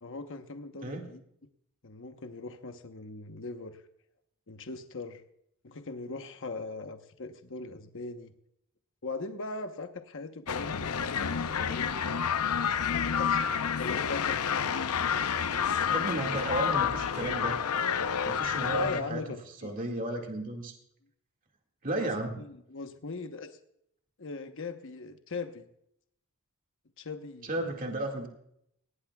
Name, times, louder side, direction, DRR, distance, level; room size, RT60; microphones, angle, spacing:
voice 1, 0.0-1.2 1.8-3.8 4.5-5.2 5.6-8.3 9.0-12.1 12.9-13.4 13.8-14.4 15.5-15.9 18.7-19.9 22.0-22.1 22.4-23.6 24.2-25.7 27.0-27.5, left 3 dB, 60° left, 7 dB, 1.0 m, -40 dB
voice 2, 0.8-1.1 15.9-17.6 18.2-19.2 19.6-20.7 21.8-22.4 27.4-28.3, right 1 dB, 40° right, 1 dB, 2.0 m, -33 dB
sound 1, 10.5-19.0, left 7 dB, 85° left, 0.7 m, -29 dB
19.0 x 18.0 x 2.3 m, 0.73 s
head